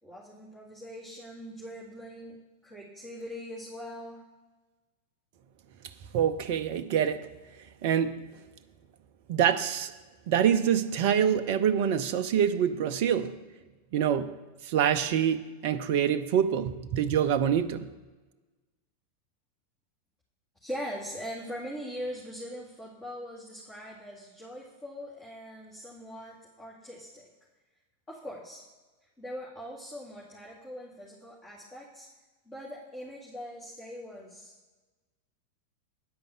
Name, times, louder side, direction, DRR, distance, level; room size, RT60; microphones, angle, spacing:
voice 1, 0.0-2.4 2.6-4.2 20.6-27.3 28.1-28.6 29.2-32.1 32.5-34.5, equal, 15° left, 2.3 m, -41 dB
voice 2, 6.1-7.2 7.8-8.1 9.3-9.9 10.3-13.4 13.9-14.3 14.7-17.9, right 9 dB, 50° right, 0.5 m, -25 dB
9.5 x 5.2 x 8.1 m
figure-of-eight pair, 90°, 0 cm